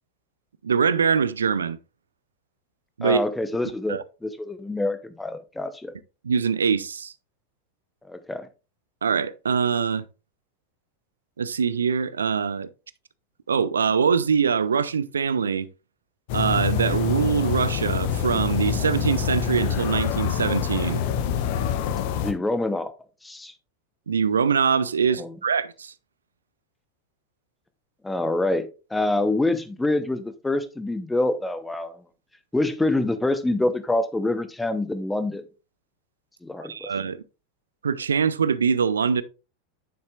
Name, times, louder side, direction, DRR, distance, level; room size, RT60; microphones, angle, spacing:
voice 1, 0.6-1.8 3.0-3.2 3.9-4.0 6.2-7.1 9.0-10.0 11.4-12.7 13.5-15.7 16.3-21.0 24.1-25.9 36.6-37.2 37.8-39.2, right 6 dB, 70° right, 0.5 m, -23 dB
voice 2, 3.0-5.9 8.1-8.5 22.2-22.9 23.2-23.5 25.2-25.4 28.0-31.9 32.5-35.4 36.4-36.9, left 2 dB, 10° left, 0.9 m, -26 dB
sound 1, 16.3-22.3, left 8 dB, 50° left, 1.0 m, -26 dB
9.4 x 7.2 x 2.5 m
figure-of-eight pair, 85°, 0 cm